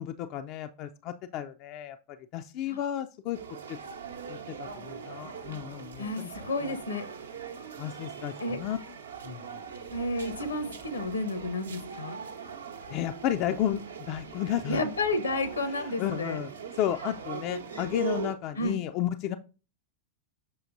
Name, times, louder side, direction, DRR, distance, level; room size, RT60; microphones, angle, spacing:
voice 1, 0.0-2.0 2.3-3.4 4.3-6.3 6.6-6.7 7.8-8.8 9.2-9.6 12.9-13.8 14.1-14.8 15.8-16.5 16.8-19.4, left 11 dB, 40° left, 8 dB, 0.4 m, -32 dB
sound 1, 3.3-18.3, right 6 dB, 70° right, 0.7 m, -41 dB
voice 2, 6.0-7.0 8.4-8.6 9.9-12.2 14.7-16.4 18.6-18.8, left 2 dB, 75° left, 11 dB, 0.9 m, -31 dB
6.9 x 5.6 x 2.6 m, 0.34 s
figure-of-eight pair, 90°, 0 cm